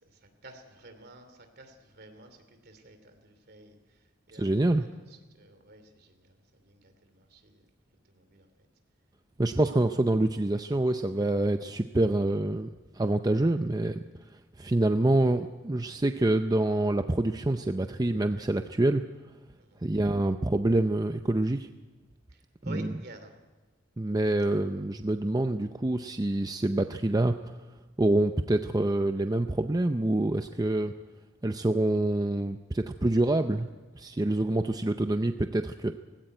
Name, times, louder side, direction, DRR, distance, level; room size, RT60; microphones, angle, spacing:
voice 1, 0.0-7.6 8.1-8.5 19.6-19.8 22.3-23.3, right 1 dB, 55° right, 8 dB, 2.8 m, -51 dB
voice 2, 4.3-4.9 9.4-12.7 13.0-14.0 14.6-19.0 19.8-21.7 22.6-22.9 24.0-27.4 28.0-30.9 31.4-33.7 34.0-35.9, right 1 dB, 20° right, 8 dB, 0.6 m, -26 dB
18.5 x 16.5 x 9.3 m, 1.2 s
head